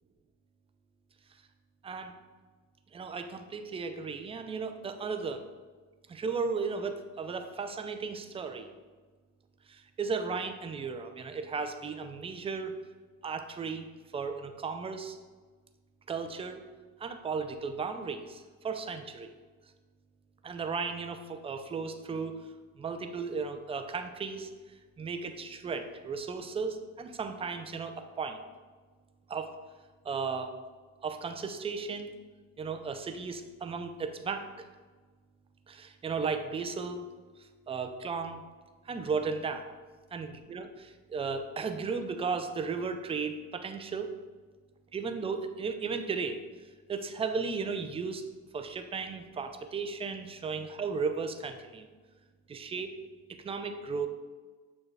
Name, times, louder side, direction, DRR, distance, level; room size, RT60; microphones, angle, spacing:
voice 1, 2.9-5.4 6.1-8.7 9.7-12.8 13.2-13.9 14.1-15.2 16.1-16.6 17.0-19.3 20.4-22.3 22.8-24.5 25.0-28.4 29.3-29.6 30.0-30.5 31.0-32.1 32.6-34.7 35.7-37.0 37.7-38.4 38.9-39.7 40.1-44.1 44.9-46.4 46.9-48.2 48.5-51.9 52.5-52.9 53.4-54.1, right 5 dB, 15° right, 7 dB, 0.3 m, -35 dB
6.5 x 2.3 x 3.3 m, 1.4 s
supercardioid pair, 80°, 38 cm